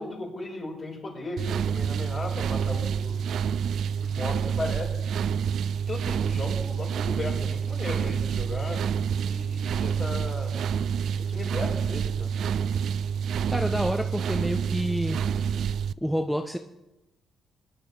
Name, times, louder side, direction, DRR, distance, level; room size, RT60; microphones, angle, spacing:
voice 1, 0.0-3.2 4.0-4.9 5.9-8.8 9.3-10.6 11.2-12.3, left 2 dB, 40° left, -3 dB, 5.3 m, -36 dB
sound 1, 1.4-15.9, right 7 dB, 70° right, 0.3 m, -28 dB
voice 2, 13.5-15.2 16.0-16.6, equal, ahead, 5 dB, 0.6 m, -28 dB
18.5 x 11.0 x 3.5 m, 0.96 s
cardioid pair, 90°, 0 cm